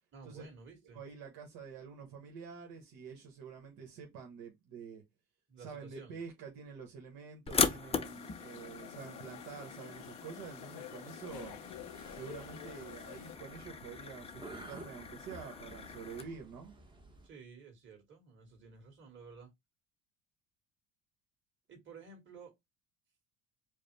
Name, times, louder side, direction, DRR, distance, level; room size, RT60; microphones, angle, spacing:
voice 1, 0.1-1.0 5.5-6.2 17.2-19.5 21.7-22.5, right 5 dB, 35° right, 2.3 m, -53 dB
voice 2, 0.9-5.0 5.6-11.6 12.1-16.7, right 6 dB, 70° right, 1.3 m, -48 dB
sound 1, 7.5-16.2, left 5 dB, 15° left, 0.5 m, -39 dB
sound 2, 8.0-13.4, left 16 dB, 90° left, 0.6 m, -51 dB
sound 3, 11.3-17.3, right 2 dB, 15° right, 0.9 m, -53 dB
4.9 x 2.2 x 3.4 m
cardioid pair, 130°, 36 cm